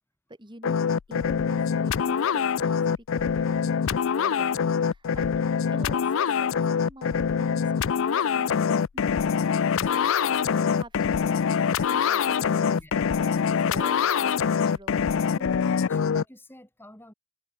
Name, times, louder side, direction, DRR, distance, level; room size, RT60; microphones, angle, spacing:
voice 1, 0.3-9.6 10.4-15.1, right 1 dB, 20° right, 3.9 m, -47 dB
sound 1, 0.6-16.2, left 7 dB, 60° left, 0.4 m, -24 dB
voice 2, 9.7-10.1 12.6-13.0 15.4-17.1, equal, 10° left, 4.8 m, -48 dB
head